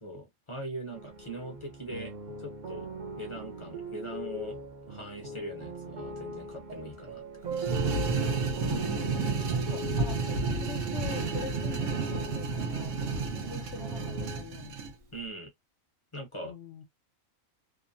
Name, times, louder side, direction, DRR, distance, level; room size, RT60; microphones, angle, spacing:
voice 1, 0.0-2.1 2.4-2.9 3.2-4.6 4.9-7.7 9.8-10.1 15.1-15.5 16.1-16.5, right 1 dB, 30° left, 0.7 m, -41 dB
sound 1, 0.9-14.4, right 2 dB, 45° right, 0.7 m, -41 dB
Guitar, 7.4-15.1, right 4 dB, 85° right, 1.2 m, -44 dB
sound 2, 7.5-14.9, right 4 dB, 70° right, 1.0 m, -31 dB
voice 2, 8.6-14.8 16.4-16.8, left 6 dB, 65° left, 0.9 m, -44 dB
2.9 x 2.1 x 2.5 m
omnidirectional pair, 1.4 m